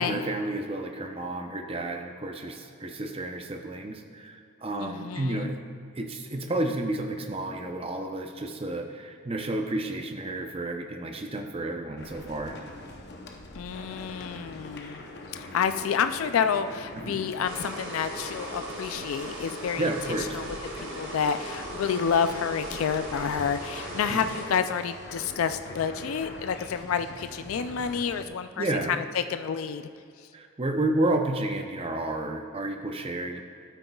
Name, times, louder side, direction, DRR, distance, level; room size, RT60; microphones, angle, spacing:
voice 1, 0.0-5.6 6.0-12.6 16.9-17.3 19.8-20.4 24.1-24.3 28.6-28.9 30.3-33.4, right 2 dB, 30° right, 4 dB, 0.6 m, -31 dB
voice 2, 4.8-5.5 13.6-15.0 15.4-19.9 20.3-20.5 20.8-28.6 29.3-29.8, left 7 dB, 85° left, 10 dB, 0.4 m, -29 dB
sound 1, 12.0-28.3, left 2 dB, 55° left, 0.8 m, -43 dB
sound 2, 17.4-24.5, right 1 dB, 70° right, 2.0 m, -38 dB
12.0 x 8.9 x 2.3 m, 2.4 s
head